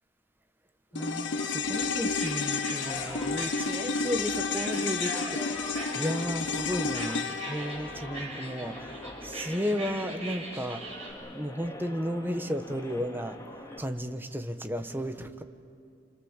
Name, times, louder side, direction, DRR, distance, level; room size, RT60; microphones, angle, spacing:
voice 1, 0.9-13.4 13.8-15.4, equal, 10° right, 7 dB, 1.1 m, -34 dB
sound 1, 1.0-9.4 9.7-9.8, left 4 dB, 85° left, 0.9 m, -32 dB
sound 2, 1.0-13.8, left 1 dB, 20° left, 2.2 m, -44 dB
sound 3, 1.6-11.1, right 2 dB, 35° right, 5.8 m, -43 dB
28.0 x 27.0 x 7.3 m, 2.3 s
head